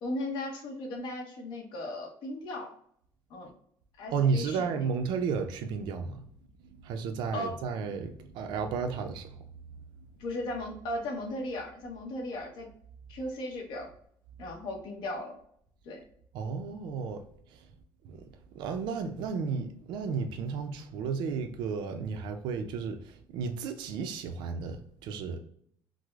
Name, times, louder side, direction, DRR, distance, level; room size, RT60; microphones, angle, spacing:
voice 1, 0.0-2.7 3.3-3.5 4.0-4.9 7.3-7.5 10.2-12.7 13.1-13.9 14.4-15.4 15.8-16.0, left 1 dB, 75° left, 0.8 m, -36 dB
voice 2, 4.1-6.2 6.8-9.3 16.3-17.2 18.0-18.2 18.5-25.4, right 5 dB, 85° right, 0.4 m, -33 dB
4.6 x 2.0 x 2.3 m
cardioid pair, 160°, 8 cm